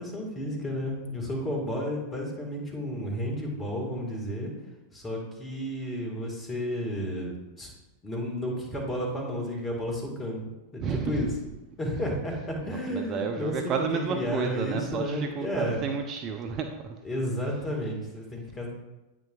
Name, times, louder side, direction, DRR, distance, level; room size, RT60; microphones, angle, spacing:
voice 1, 0.0-4.5 4.9-7.7 8.0-11.3 11.8-15.8 17.0-18.7, equal, 20° left, 0 dB, 1.9 m, -32 dB
voice 2, 10.8-11.3 12.7-17.0, right 6 dB, 30° right, 4 dB, 0.5 m, -31 dB
8.8 x 6.0 x 2.5 m, 1.0 s
figure-of-eight pair, 90°, 0 cm